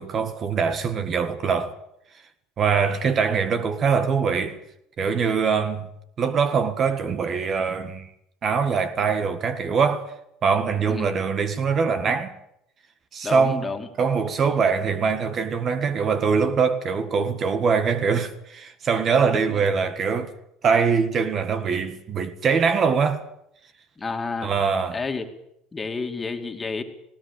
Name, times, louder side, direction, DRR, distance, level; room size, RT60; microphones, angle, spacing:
voice 1, 0.0-1.7 2.6-4.6 5.0-5.9 6.2-8.1 8.4-10.1 10.4-12.3 13.1-13.7 14.0-20.3 20.6-23.2 24.4-25.0, right 5 dB, 45° right, 1.8 m, -23 dB
voice 2, 13.2-13.9 19.5-19.6 24.0-24.5 24.9-25.3 25.7-26.8, left 4 dB, 20° left, 2.5 m, -30 dB
18.5 x 17.0 x 8.5 m
supercardioid pair, 90°, 0 cm